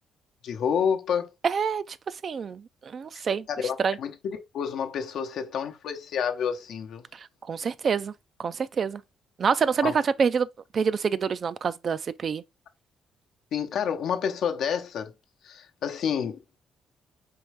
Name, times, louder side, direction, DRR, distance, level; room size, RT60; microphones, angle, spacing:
voice 1, 0.4-1.3 3.5-7.0 9.8-9.9 13.5-15.1 15.4-16.6, left 7 dB, 75° left, 0.8 m, -29 dB
voice 2, 1.4-2.0 2.2-3.5 3.8-4.0 7.1-8.1 8.4-9.0 9.4-10.5 10.7-12.4, right 6 dB, 50° right, 0.3 m, -26 dB
4.5 x 3.1 x 3.3 m
cardioid pair, 90°, 0 cm